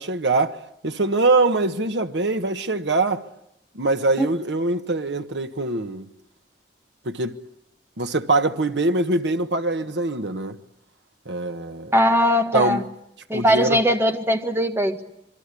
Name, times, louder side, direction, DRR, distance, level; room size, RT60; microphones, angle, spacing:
voice 1, 0.0-3.2 3.7-6.1 7.0-7.4 8.0-10.6 11.2-11.9 12.5-12.8 13.3-13.8, right 2 dB, 80° right, 1.4 m, -23 dB
voice 2, 11.9-12.8 13.3-15.0, equal, 15° right, 1.8 m, -20 dB
26.5 x 23.5 x 8.4 m
head